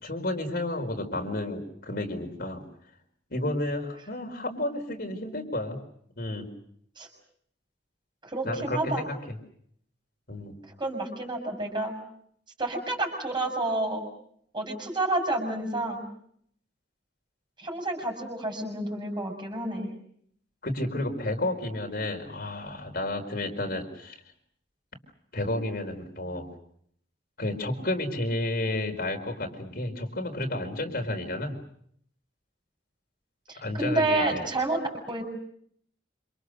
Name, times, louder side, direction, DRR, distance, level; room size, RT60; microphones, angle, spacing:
voice 1, 0.0-2.6 3.3-5.8 6.2-6.5 8.4-9.4 10.3-10.6 20.6-24.2 25.3-26.5 27.4-31.6 33.6-34.4, left 1 dB, 50° left, 3 dB, 4.5 m, -31 dB
voice 2, 8.2-9.1 10.8-11.9 12.6-14.0 14.5-16.0 17.6-19.9 33.5-34.8 35.1-35.2, right 2 dB, 25° right, 3 dB, 6.4 m, -29 dB
27.5 x 27.5 x 6.6 m, 0.69 s
head